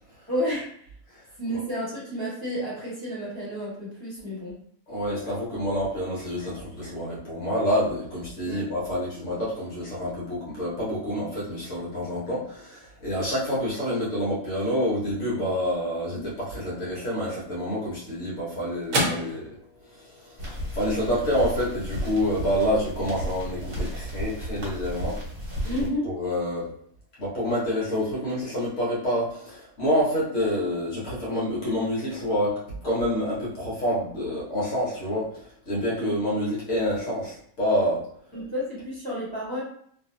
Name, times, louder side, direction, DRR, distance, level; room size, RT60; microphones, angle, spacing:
voice 1, 0.3-0.7 1.4-4.5 8.4-8.7 16.1-16.2 25.6-26.1 36.0-36.1 38.3-39.6, equal, 15° right, -9 dB, 1.3 m, -31 dB
voice 2, 4.9-19.5 19.9-25.2 25.7-25.8 26.0-26.7 27.2-38.0, equal, 60° left, -7 dB, 1.4 m, -28 dB
sound 1, 17.6-26.2, right 1 dB, 70° right, 1.1 m, -37 dB
sound 2, 20.4-25.9, equal, 40° right, 1.2 m, -33 dB
3.0 x 2.5 x 2.7 m, 0.63 s
omnidirectional pair, 1.5 m